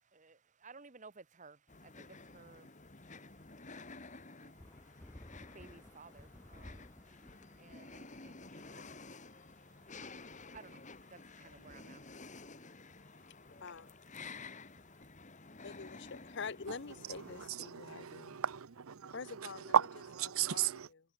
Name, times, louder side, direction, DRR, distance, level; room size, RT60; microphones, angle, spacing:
voice 1, 0.0-12.2, right 4 dB, 35° right, 1.1 m, -59 dB
sound 1, 1.7-17.5, left 3 dB, 35° left, 2.1 m, -52 dB
sound 2, 3.1-15.1, right 1 dB, 10° right, 5.3 m, -75 dB
sound 3, 4.6-14.5, left 1 dB, 10° left, 0.6 m, -59 dB
voice 2, 13.6-14.0 15.6-18.4 19.1-19.8 20.5-21.0, left 5 dB, 55° left, 0.8 m, -46 dB
voice 3, 17.3-20.9, right 8 dB, 80° right, 0.7 m, -35 dB
head